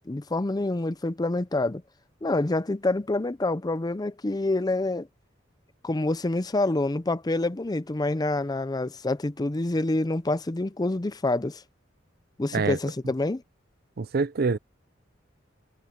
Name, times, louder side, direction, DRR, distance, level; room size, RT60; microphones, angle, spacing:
voice 1, 0.1-1.8 2.2-5.1 5.8-11.6 12.4-13.4, left 2 dB, 20° left, 0.5 m, -27 dB
voice 2, 14.0-14.6, right 4 dB, 50° right, 0.5 m, -25 dB
head